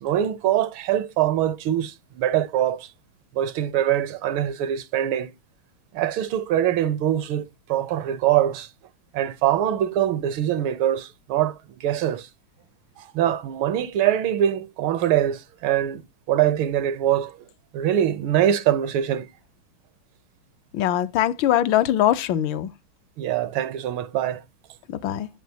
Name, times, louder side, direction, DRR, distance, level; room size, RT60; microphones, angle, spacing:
voice 1, 0.0-2.9 3.3-5.3 5.9-8.7 9.1-12.3 13.0-17.4 17.7-19.2 23.2-24.4, right 11 dB, 85° right, 1.6 m, -23 dB
voice 2, 20.7-22.7 25.0-25.3, left 12 dB, 75° left, 1.4 m, -21 dB
9.3 x 8.2 x 2.8 m
omnidirectional pair, 2.2 m